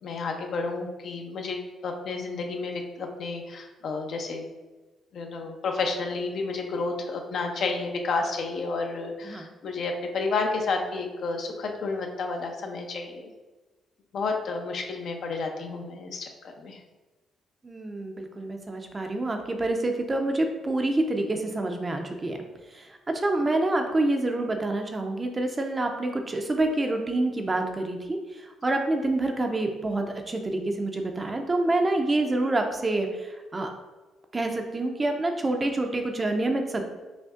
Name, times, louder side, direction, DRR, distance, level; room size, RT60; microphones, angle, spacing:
voice 1, 0.0-4.5 5.1-13.3 14.1-16.8, left 3 dB, 65° left, 3 dB, 0.6 m, -31 dB
voice 2, 17.6-22.4 22.7-28.2 28.6-33.1 33.5-33.7 34.3-36.8, right 2 dB, 25° right, 4 dB, 0.5 m, -27 dB
5.1 x 2.7 x 2.4 m, 1.2 s
cardioid pair, 90°, 0 cm